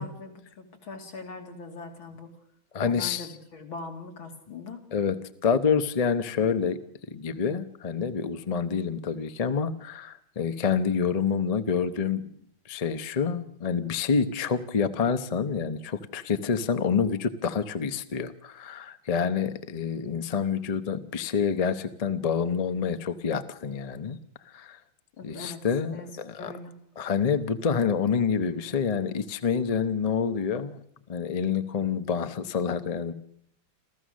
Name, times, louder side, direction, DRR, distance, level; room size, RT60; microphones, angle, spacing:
voice 1, 0.0-2.3 2.9-4.8 25.2-25.6 25.9-26.7, left 3 dB, 80° left, 3 dB, 3.4 m, -41 dB
voice 2, 2.7-3.3 4.9-6.8 7.1-12.2 12.7-24.2 24.5-24.8 25.2-26.5 27.0-30.8 31.1-33.1, left 6 dB, 50° left, 11 dB, 0.4 m, -27 dB
28.0 x 14.5 x 6.4 m, 0.69 s
omnidirectional pair, 2.2 m